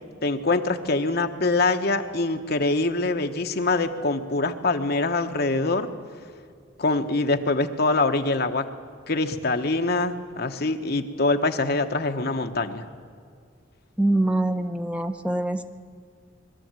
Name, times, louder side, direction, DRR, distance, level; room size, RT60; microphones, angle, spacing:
voice 1, 0.2-5.9 6.8-8.6 9.1-12.8, left 3 dB, 55° left, 6 dB, 1.2 m, -24 dB
voice 2, 14.0-15.6, right 1 dB, 5° right, 7 dB, 0.7 m, -24 dB
21.5 x 13.5 x 9.0 m, 2.2 s
head